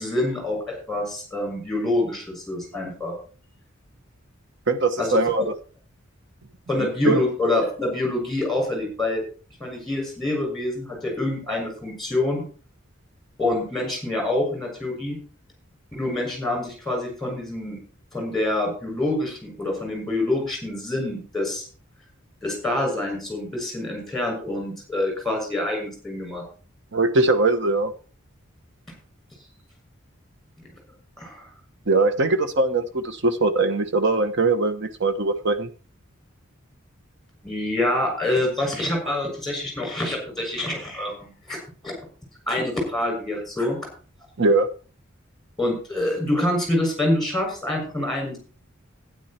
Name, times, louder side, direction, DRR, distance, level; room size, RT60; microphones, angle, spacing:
voice 1, 0.0-3.1 5.0-5.2 6.7-9.2 9.6-12.4 13.4-15.2 15.9-17.8 18.1-21.7 22.4-26.4 31.2-31.4 37.4-41.9 42.5-43.8 45.6-48.4, left 1 dB, ahead, 1 dB, 6.7 m, -26 dB
voice 2, 4.7-5.5 7.0-7.2 26.9-27.9 31.9-35.7 44.4-44.7, right 3 dB, 60° right, 9 dB, 1.2 m, -21 dB
12.0 x 10.0 x 4.4 m, 0.38 s
head